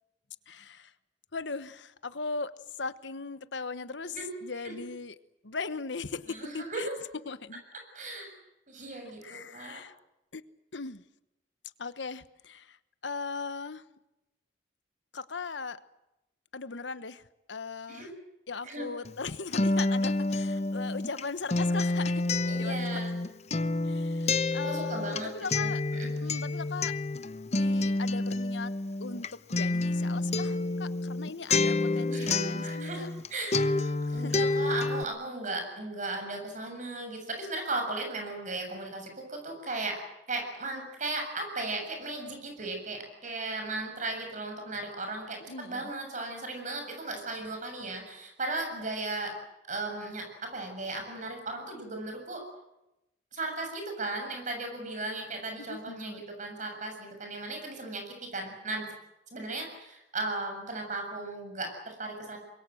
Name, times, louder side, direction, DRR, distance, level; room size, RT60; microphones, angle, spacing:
voice 1, 0.5-0.9 1.3-2.5 2.8-4.2 4.4-5.1 5.4-6.9 7.3-7.6 9.2-9.9 10.3-10.4 10.7-11.0 11.8-12.8 13.0-13.8 15.1-15.8 16.5-17.2 17.5-18.1 18.5-22.3 22.6-23.0 23.8-25.8 26.2-26.9 27.5-28.7 29.0-33.1 34.1-34.5 45.5-45.9 55.7-56.2, left 4 dB, 85° left, 14 dB, 1.2 m, -38 dB
voice 2, 6.3-6.9 7.9-8.3 8.7-9.8 17.9-18.1 18.6-18.9 22.5-23.1 24.6-25.3 25.6-26.1 32.1-40.0 40.3-49.4 49.7-52.4 53.3-58.9 59.3-62.4, right 2 dB, 45° right, 4 dB, 7.3 m, -36 dB
Acoustic guitar, 19.0-33.3 33.5-35.0, left 2 dB, 40° left, 0.8 m, -29 dB
25.0 x 22.5 x 7.8 m, 0.91 s
head